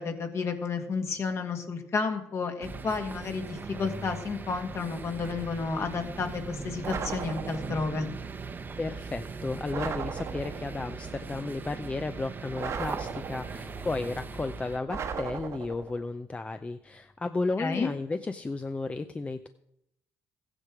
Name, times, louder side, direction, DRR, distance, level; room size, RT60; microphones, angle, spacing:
voice 1, 0.0-8.1 17.6-17.9, left 4 dB, 50° left, 5 dB, 1.8 m, -31 dB
sound 1, 2.6-14.8, right 4 dB, 35° right, 1.0 m, -40 dB
sound 2, 6.8-7.9 9.7-10.8 12.6-13.7 14.9-16.0, right 6 dB, 55° right, 1.3 m, -36 dB
voice 2, 8.8-19.5, left 3 dB, 20° left, 9 dB, 0.6 m, -33 dB
14.5 x 9.8 x 4.9 m, 0.79 s
cardioid pair, 90°, 6 cm